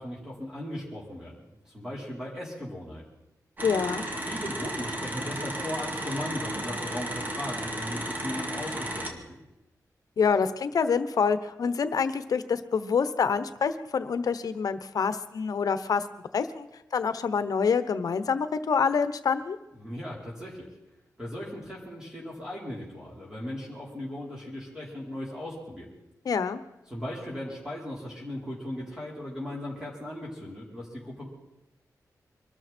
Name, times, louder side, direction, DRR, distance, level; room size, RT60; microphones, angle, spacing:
voice 1, 0.0-3.0 4.2-9.4 19.7-20.7 21.2-25.9 26.9-31.3, left 1 dB, 10° right, -5 dB, 4.6 m, -37 dB
voice 2, 3.6-4.0 10.2-16.0 16.3-16.7 16.9-19.6 26.2-26.6, left 6 dB, 75° left, 12 dB, 1.0 m, -26 dB
sound 1, 3.6-9.1, right 1 dB, 30° right, 2.1 m, -34 dB
24.5 x 13.0 x 4.5 m, 0.93 s
wide cardioid pair, 130°, 6 cm